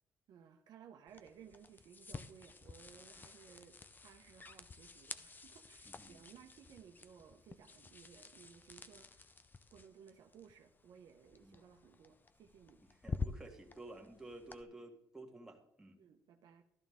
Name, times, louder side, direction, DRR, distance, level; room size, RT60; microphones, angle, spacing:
voice 1, 0.3-9.4 9.7-12.8 16.0-16.6, right 7 dB, 70° right, 5 dB, 0.9 m, -59 dB
sound 1, 1.1-14.6, left 4 dB, 25° left, 0.6 m, -49 dB
voice 2, 5.9-6.2 11.4-11.6 13.0-16.0, right 2 dB, 5° right, 0 dB, 1.8 m, -52 dB
13.0 x 11.5 x 3.6 m, 0.77 s
cardioid pair, 100°, 7 cm